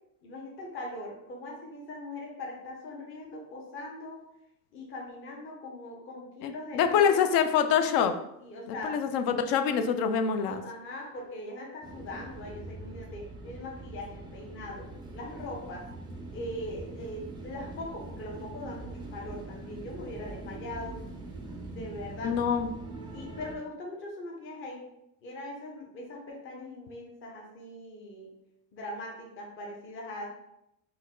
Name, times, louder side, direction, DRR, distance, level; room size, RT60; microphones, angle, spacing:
voice 1, 0.2-4.2 4.7-7.4 8.4-9.0 10.5-15.9 16.3-21.0 21.7-22.4 23.1-24.8 25.2-28.3 28.7-30.3, left 1 dB, 30° left, -1 dB, 0.7 m, -41 dB
voice 2, 6.4-8.1 8.8-10.6 22.2-22.7, left 7 dB, 60° left, 8 dB, 0.5 m, -25 dB
sound 1, 11.8-23.6, right 2 dB, 10° right, 0.3 m, -43 dB
4.3 x 2.2 x 3.7 m, 0.83 s
cardioid pair, 150°, 39 cm